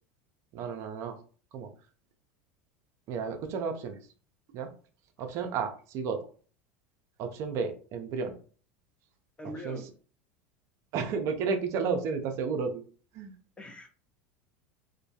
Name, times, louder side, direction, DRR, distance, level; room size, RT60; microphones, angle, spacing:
voice 1, 0.5-1.2 1.5-1.7 3.1-4.0 4.5-4.7 5.2-6.2 7.2-8.3 9.6-9.8 10.9-12.8 13.1-13.3, right 5 dB, 50° right, 5 dB, 0.5 m, -32 dB
voice 2, 9.4-9.9 13.6-13.9, equal, 15° left, 4 dB, 0.6 m, -41 dB
2.2 x 2.1 x 2.7 m, 0.41 s
hypercardioid pair, 85°, 6 cm